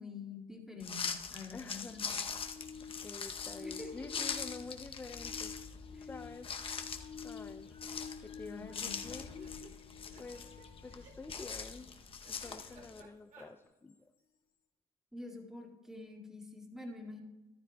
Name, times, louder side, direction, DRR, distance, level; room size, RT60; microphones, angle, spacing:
voice 1, 0.0-2.2 3.6-4.3 5.9-6.1 8.4-9.0 15.1-17.2, left 3 dB, 5° right, 0 dB, 2.0 m, -47 dB
sound 1, 0.8-13.0, left 6 dB, 30° left, 0.7 m, -43 dB
voice 2, 1.5-2.2 3.0-5.5 6.0-6.6 7.2-7.7 8.2-9.5 10.2-11.9 12.3-14.1, left 3 dB, 15° left, 7 dB, 0.4 m, -48 dB
sound 2, 1.8-11.6 13.9-14.0, left 6 dB, 70° left, 1.4 m, -50 dB
sound 3, 7.4-7.7 8.0-8.1 8.3-8.4 9.0-13.5, right 3 dB, 55° right, 3.0 m, -59 dB
14.0 x 11.5 x 2.2 m, 1.1 s
cardioid pair, 110°, 17 cm